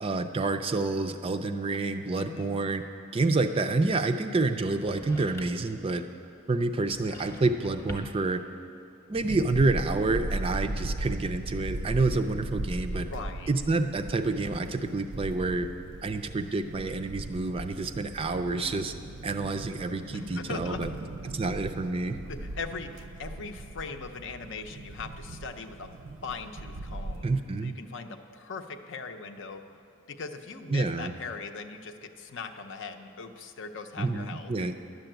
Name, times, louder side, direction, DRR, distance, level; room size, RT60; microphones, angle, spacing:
voice 1, 0.0-2.8 3.1-6.0 6.5-8.4 9.1-13.1 13.5-15.7 16.0-18.9 19.2-20.9 21.3-22.2 27.2-27.7 30.7-31.1 34.0-34.8, right 3 dB, 25° right, 7 dB, 0.4 m, -28 dB
voice 2, 2.2-2.7 13.1-13.5 20.1-20.8 22.3-25.9 26.2-27.2 27.6-29.6 30.1-34.5, left 4 dB, 60° left, 6 dB, 0.7 m, -40 dB
sound 1, 4.8-5.8 6.9-8.3, equal, 15° left, 0.9 m, -43 dB
sound 2, 9.1-27.4, right 2 dB, 70° right, 0.6 m, -38 dB
11.0 x 6.9 x 9.0 m, 2.7 s
head